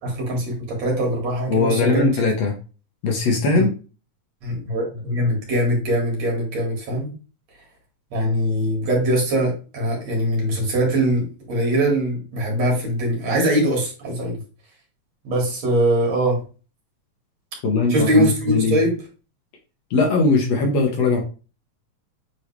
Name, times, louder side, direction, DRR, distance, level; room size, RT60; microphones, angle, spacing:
voice 1, 0.0-2.1 3.5-3.7 4.4-7.1 8.1-14.4 15.2-16.4 17.9-19.0, right 1 dB, 60° right, -1 dB, 3.3 m, -22 dB
voice 2, 1.5-2.6 3.0-3.7 17.6-18.8 19.9-21.2, left 3 dB, 60° left, 1 dB, 2.2 m, -20 dB
8.2 x 3.7 x 3.3 m, 0.34 s
omnidirectional pair, 3.5 m